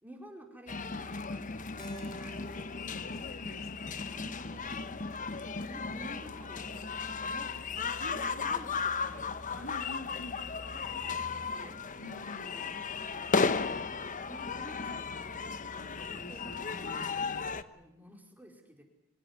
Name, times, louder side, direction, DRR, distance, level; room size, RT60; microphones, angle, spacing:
voice 1, 0.0-2.7 3.8-5.2 5.7-6.7 7.0-10.2 10.6-11.8 12.5-13.7 14.2-15.2 15.7-17.2 17.7-18.8, right 1 dB, 10° right, 2 dB, 4.7 m, -52 dB
sound 1, 0.7-17.6, left 5 dB, 40° left, 1.1 m, -35 dB
Keyboard (musical), 1.8-6.2, left 1 dB, 20° left, 4.3 m, -53 dB
voice 2, 2.8-4.1 7.5-7.6 8.0-8.5 9.6-10.4 12.0-12.6 15.8-17.6, left 1 dB, 75° left, 4 dB, 3.8 m, -48 dB
25.5 x 17.5 x 9.6 m, 0.87 s
head